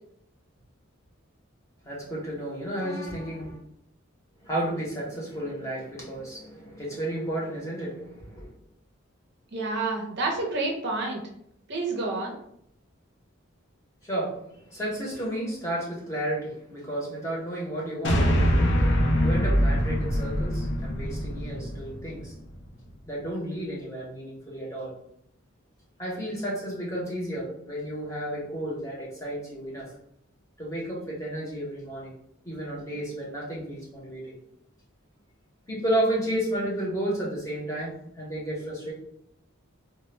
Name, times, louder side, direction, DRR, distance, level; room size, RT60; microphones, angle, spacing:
voice 1, 1.8-3.6 4.4-8.5 14.0-18.3 19.2-22.3 23.1-24.9 26.0-29.9 30.6-32.1 32.4-34.3 35.7-38.9, right 1 dB, 15° left, -5 dB, 0.7 m, -32 dB
voice 2, 9.5-11.2 11.7-12.4, right 3 dB, 55° right, 0 dB, 0.5 m, -29 dB
sound 1, 18.0-22.5, equal, 55° left, 0.5 m, -24 dB
2.1 x 2.1 x 3.1 m, 0.72 s
head